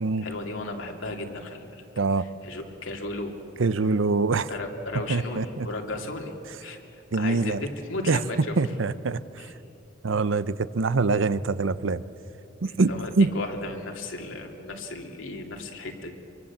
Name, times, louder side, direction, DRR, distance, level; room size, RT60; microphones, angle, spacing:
voice 1, 0.2-1.8 2.2-3.3 4.5-6.8 7.1-8.5 9.4-9.5 12.7-16.1, left 2 dB, 90° left, 2 dB, 2.6 m, -35 dB
voice 2, 2.0-2.3 3.6-4.5 5.1-5.7 7.1-7.6 8.1-8.2 8.6-9.2 10.0-12.0 12.6-13.3, right 3 dB, 85° right, 15 dB, 0.7 m, -24 dB
24.5 x 23.5 x 7.3 m, 2.9 s
head